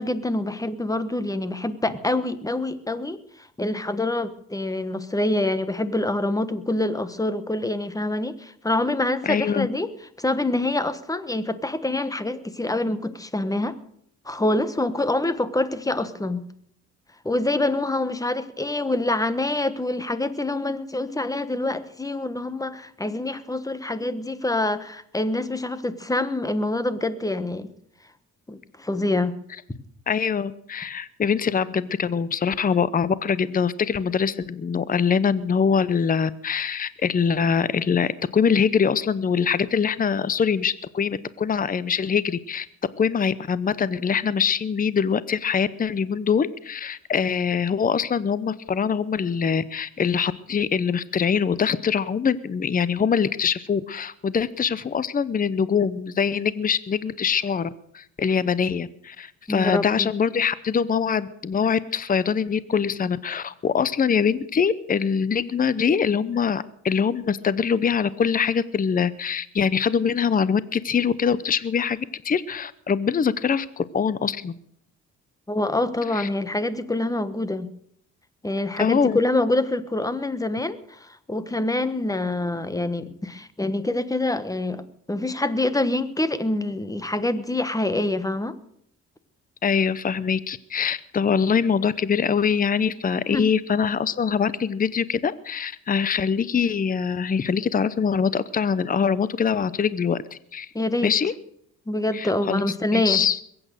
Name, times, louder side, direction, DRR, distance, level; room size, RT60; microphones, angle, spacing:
voice 1, 0.0-9.9 10.2-13.8 14.2-16.4 17.2-27.7 28.5-29.4 59.5-60.1 75.5-77.7 78.4-84.8 85.1-88.6 93.3-93.5 100.7-101.1 101.9-103.2, left 2 dB, 10° left, 13 dB, 1.3 m, -26 dB
voice 2, 9.2-9.7 30.1-42.7 43.0-72.0 72.2-74.6 76.2-76.3 78.8-79.2 89.6-100.7 101.0-101.3 102.1-103.4, left 6 dB, 30° left, 17 dB, 0.7 m, -23 dB
21.5 x 8.8 x 6.6 m, 0.69 s
cardioid pair, 90°, 30 cm